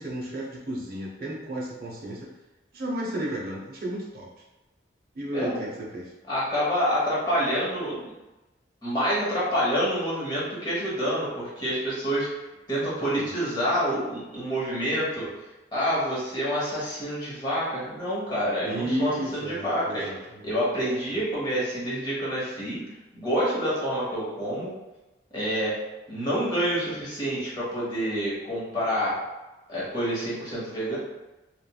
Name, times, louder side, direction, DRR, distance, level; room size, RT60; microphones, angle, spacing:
voice 1, 0.0-2.3 2.7-4.3 5.1-6.1 12.8-13.3 18.6-20.5, right 1 dB, 50° right, -5 dB, 0.7 m, -33 dB
voice 2, 6.3-8.1 8.8-12.3 12.7-15.3 15.7-20.1 20.4-22.8 23.1-24.7 25.3-25.8 26.1-29.2 29.7-31.0, equal, 20° left, -9 dB, 1.1 m, -27 dB
3.0 x 2.4 x 2.2 m, 1.1 s
head